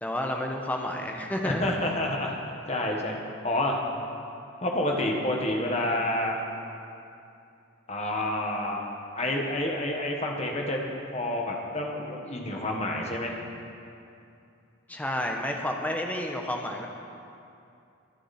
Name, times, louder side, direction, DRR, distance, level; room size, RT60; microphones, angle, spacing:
voice 1, 0.0-1.7 14.9-16.9, left 1 dB, 10° left, 1 dB, 1.1 m, -30 dB
voice 2, 1.4-2.4 2.7-3.2 3.4-3.7 4.6-6.4 7.9-8.8 9.2-13.4, left 1 dB, 30° left, 0 dB, 1.6 m, -28 dB
23.5 x 9.0 x 4.4 m, 2.6 s
head